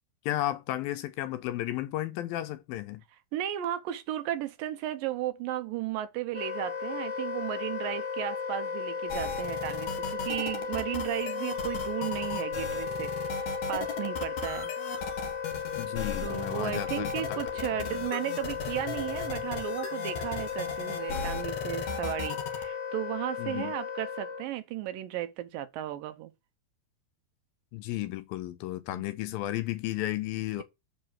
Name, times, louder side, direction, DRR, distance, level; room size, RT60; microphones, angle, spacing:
voice 1, 0.3-3.0 15.8-17.4 23.4-23.7 27.7-30.6, left 15 dB, 80° left, 2.4 m, -33 dB
voice 2, 3.3-13.1 13.7-14.7 16.2-26.3 28.9-29.0, right 12 dB, 75° right, 2.4 m, -34 dB
Wind instrument woodwind instrument, 6.3-24.5, left 6 dB, 40° left, 1.1 m, -35 dB
sound 1, 9.1-22.6, left 5 dB, 60° left, 2.5 m, -37 dB
7.8 x 5.4 x 7.4 m
omnidirectional pair, 4.3 m